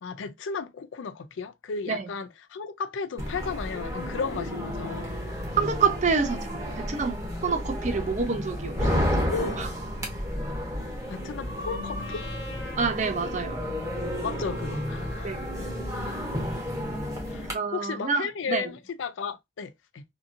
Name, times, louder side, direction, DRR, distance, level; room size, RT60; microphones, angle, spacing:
voice 1, 0.0-5.1 9.2-9.6 11.1-12.3 14.2-15.8 17.3-20.0, left 5 dB, 85° left, 0.4 m, -34 dB
sound 1, 3.2-17.5, equal, 15° right, 0.8 m, -32 dB
voice 2, 5.6-9.1 9.6-9.7 12.8-13.7 15.2-15.5 17.5-18.7, right 5 dB, 40° right, 0.5 m, -28 dB
Trumpet, 12.0-16.3, equal, 65° left, 0.8 m, -44 dB
2.7 x 2.6 x 2.4 m
head